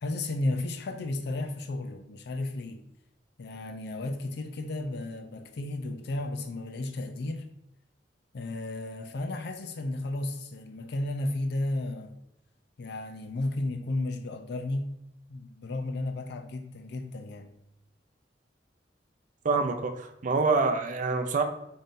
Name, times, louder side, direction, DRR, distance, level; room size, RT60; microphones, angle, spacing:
voice 1, 0.0-2.8 3.4-7.5 8.3-12.1 12.8-15.0 15.3-17.5, left 2 dB, 65° left, 0.5 m, -33 dB
voice 2, 19.4-21.4, right 4 dB, 45° right, 0.4 m, -26 dB
4.0 x 2.6 x 3.6 m
head